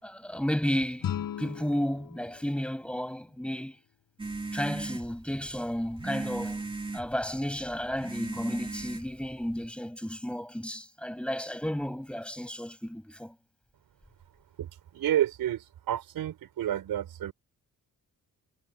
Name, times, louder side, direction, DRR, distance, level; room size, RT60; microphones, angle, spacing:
voice 1, 0.0-3.8 4.5-6.6 6.9-13.3, equal, 5° left, 5.8 m, -33 dB
sound 1, 1.0-4.0, left 10 dB, 70° left, 7.4 m, -39 dB
sound 2, 4.2-9.6, right 3 dB, 15° right, 2.8 m, -38 dB
voice 2, 14.6-17.3, right 11 dB, 80° right, 5.6 m, -30 dB
cardioid pair, 125°, 35 cm